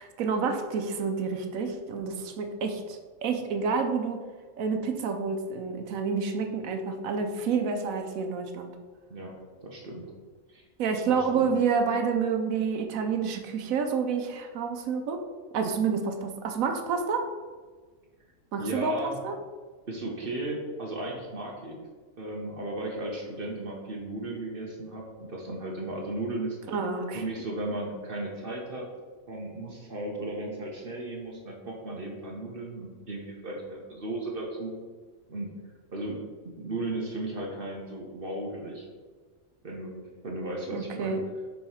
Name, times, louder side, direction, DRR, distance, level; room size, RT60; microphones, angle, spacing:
voice 1, 0.0-4.2 4.6-8.7 10.8-15.2 15.5-17.3 18.5-19.4 26.7-27.2 40.7-41.2, right 5 dB, 75° right, 5 dB, 1.1 m, -29 dB
voice 2, 9.6-10.1 10.5-10.6 11.1-11.5 18.6-19.2 19.9-21.8 22.2-26.6 27.1-28.8 29.3-34.7 35.3-35.5 35.9-38.9 39.6-41.2, right 2 dB, 45° right, -1 dB, 1.1 m, -35 dB
4.6 x 4.6 x 5.5 m, 1.4 s
omnidirectional pair, 1.4 m